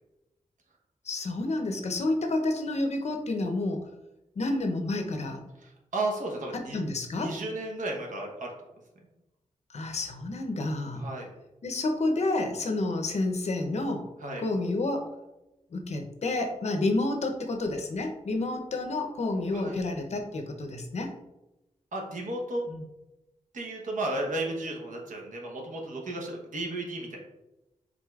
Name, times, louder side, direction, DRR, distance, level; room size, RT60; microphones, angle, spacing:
voice 1, 1.1-3.8 4.4-5.4 6.5-7.3 9.7-11.0 11.6-14.0 14.4-15.1 15.7-21.1 22.7-22.8, left 2 dB, 60° left, 4 dB, 0.6 m, -29 dB
voice 2, 5.6-6.8 7.1-8.5 11.0-11.3 14.2-14.4 19.5-19.8 21.9-22.6 23.5-27.2, right 2 dB, 90° right, 0 dB, 0.9 m, -34 dB
4.8 x 3.8 x 2.3 m, 0.95 s
wide cardioid pair, 160°, 13 cm